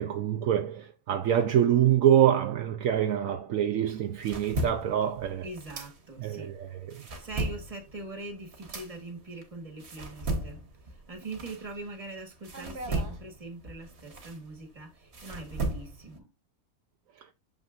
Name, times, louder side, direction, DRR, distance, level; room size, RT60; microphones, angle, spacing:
voice 1, 0.0-5.5 6.2-7.0, right 10 dB, 70° right, 1.0 m, -25 dB
sound 1, 3.9-6.4 6.8-12.1 12.4-16.2, right 2 dB, 50° right, 1.5 m, -36 dB
voice 2, 5.4-6.5 7.2-10.7 11.1-16.3, right 2 dB, 25° right, 1.5 m, -42 dB
6.5 x 5.7 x 2.5 m
omnidirectional pair, 1.5 m